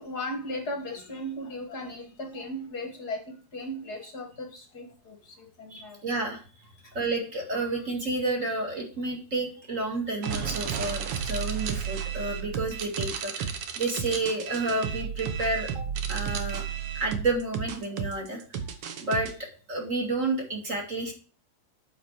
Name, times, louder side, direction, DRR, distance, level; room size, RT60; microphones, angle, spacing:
voice 1, 0.0-6.0, left 1 dB, 45° left, 3 dB, 1.3 m, -37 dB
voice 2, 5.7-6.4 6.9-16.6 16.9-18.4 19.0-19.3 19.7-21.1, right 2 dB, 30° right, 1 dB, 1.7 m, -30 dB
sound 1, 10.2-19.3, right 8 dB, 70° right, 1.4 m, -32 dB
8.9 x 5.8 x 4.8 m, 0.39 s
omnidirectional pair, 3.9 m